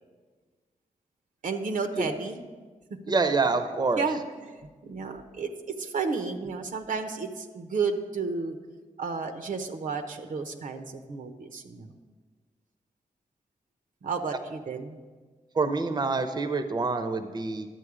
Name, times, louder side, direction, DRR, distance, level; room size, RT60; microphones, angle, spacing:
voice 1, 1.4-2.4 4.0-4.5 4.8-5.5 5.8-8.6 9.0-11.9 14.0-15.0, right 4 dB, 80° right, 7 dB, 0.9 m, -32 dB
voice 2, 3.1-4.0 15.5-17.7, right 3 dB, 30° right, 8 dB, 0.6 m, -26 dB
11.0 x 7.7 x 4.9 m, 1.4 s
wide cardioid pair, 95°, 14 cm